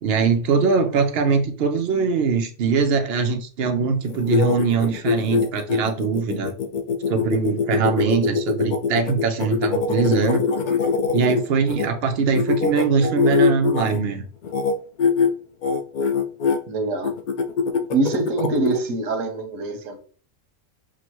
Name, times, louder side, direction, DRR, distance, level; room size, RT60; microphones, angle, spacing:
voice 1, 0.0-6.5 7.1-10.4 11.1-14.3, right 5 dB, 60° right, 0.8 m, -22 dB
sound 1, 4.0-11.9 12.3-14.0 14.4-14.7 15.0-15.3 15.6-16.6 17.0-18.8, left 5 dB, 75° left, 0.4 m, -22 dB
voice 2, 16.7-17.1 17.9-20.0, right 3 dB, 85° right, 1.2 m, -24 dB
6.0 x 2.2 x 2.9 m
omnidirectional pair, 1.3 m